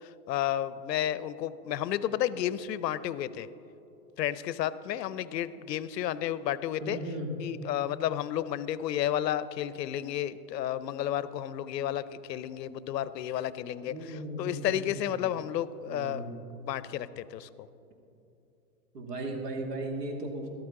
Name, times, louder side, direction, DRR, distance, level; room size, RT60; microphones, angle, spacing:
voice 1, 0.0-3.5 4.2-7.0 7.4-16.2 16.6-17.7, left 11 dB, 85° left, 16 dB, 0.6 m, -32 dB
voice 2, 6.8-7.3 13.9-14.8 15.1-15.2 15.9-16.4 18.9-20.5, right 1 dB, 70° right, 2 dB, 2.1 m, -36 dB
13.0 x 12.5 x 3.7 m, 2.8 s
hypercardioid pair, 175°, 49 cm